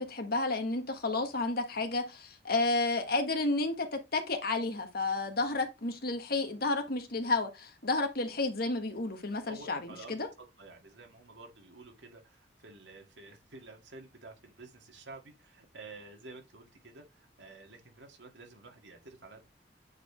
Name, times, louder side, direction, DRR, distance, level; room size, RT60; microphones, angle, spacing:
voice 1, 0.0-9.8 10.1-10.3, left 3 dB, 60° left, 1.5 m, -31 dB
voice 2, 9.5-19.4, right 3 dB, 85° right, 1.9 m, -51 dB
9.1 x 4.4 x 3.1 m
head